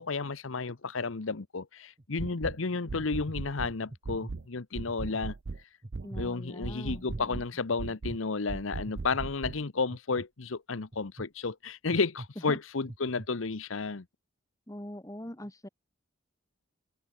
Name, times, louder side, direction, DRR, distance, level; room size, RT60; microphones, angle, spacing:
voice 1, 0.0-5.3 6.2-14.0, left 4 dB, 80° left, 0.9 m, -32 dB
sound 1, 2.0-2.4 2.9-3.4 3.9-4.3 4.8-5.3 5.8-6.3 6.8-7.3 7.8-8.2 8.9-9.2 9.9-10.3 10.9-11.3 11.9-12.3 12.8-13.3, right 1 dB, 30° right, 0.9 m, -44 dB
sound 2, 2.2-2.6 2.9-3.8 4.1-4.5 4.8-5.6 5.9-6.3 6.6-7.5 7.8-8.2 8.5-9.6, right 3 dB, 55° right, 0.5 m, -38 dB
voice 2, 6.0-7.4 12.5-12.6 14.7-15.7, left 1 dB, 15° left, 1.6 m, -42 dB
head